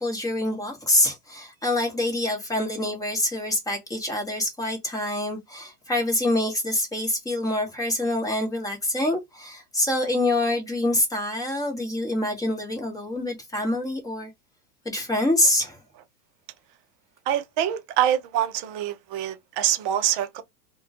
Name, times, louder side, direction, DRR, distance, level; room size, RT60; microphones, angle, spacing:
voice 1, 0.0-14.3 14.8-15.8, left 1 dB, 5° left, 0.9 m, -26 dB
voice 2, 17.3-20.4, right 11 dB, 40° right, 0.5 m, -25 dB
2.2 x 2.2 x 2.6 m
hypercardioid pair, 105°, 49 cm